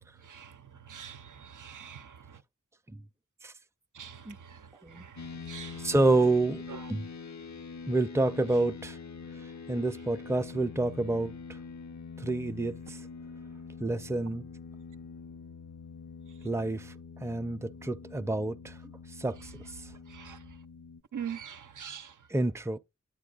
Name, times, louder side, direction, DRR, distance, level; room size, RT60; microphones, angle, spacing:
voice 1, 0.2-2.4 3.9-5.9 6.7-6.8 20.1-20.4 21.1-22.2, right 8 dB, 90° right, 0.5 m, -44 dB
sound 1, 5.1-21.0, left 5 dB, 65° left, 0.6 m, -44 dB
voice 2, 5.8-6.6 6.9-7.1 7.9-9.0 9.4-11.6 12.2-13.0 13.8-14.4 16.4-16.9 17.2-18.8 19.1-19.9 22.3-22.8, right 2 dB, 10° right, 0.4 m, -29 dB
9.2 x 7.4 x 2.4 m
wide cardioid pair, 50°, 30 cm